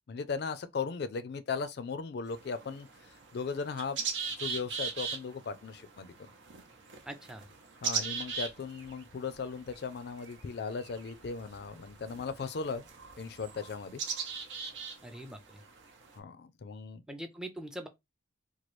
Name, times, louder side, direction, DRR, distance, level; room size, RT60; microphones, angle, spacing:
voice 1, 0.1-4.1 4.4-6.1 7.8-12.9 13.2-14.0 16.2-17.0, left 5 dB, 60° left, 0.4 m, -37 dB
sound 1, 2.3-16.2, right 5 dB, 75° right, 0.8 m, -40 dB
voice 2, 7.1-7.5 15.0-15.6 17.1-17.9, right 1 dB, 5° right, 0.4 m, -42 dB
3.0 x 2.3 x 3.1 m
head